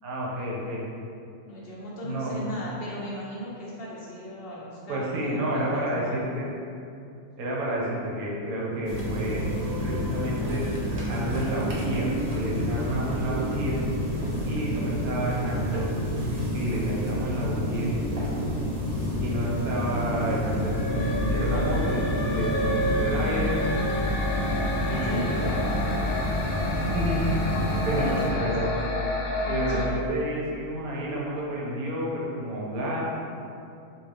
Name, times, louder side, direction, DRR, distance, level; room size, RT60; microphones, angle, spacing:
voice 1, 0.0-0.8 2.0-2.6 4.9-6.5 7.4-9.4 9.8-10.7 11.1-13.8 14.4-15.9 16.5-17.9 19.2-23.5 24.9-25.4 26.9-27.3 27.6-28.8 29.5-33.0, right 1 dB, 80° right, -4 dB, 1.2 m, -30 dB
voice 2, 1.5-6.2 14.3-15.3 24.9-25.7 28.0-29.0 29.4-30.0 32.8-32.9, left 1 dB, 55° left, -6 dB, 0.6 m, -37 dB
sound 1, 8.8-28.3, equal, 40° right, 0.6 m, -29 dB
sound 2, 20.4-29.9, left 1 dB, 75° left, 1.0 m, -29 dB
3.8 x 2.7 x 3.3 m, 2.6 s
omnidirectional pair, 1.5 m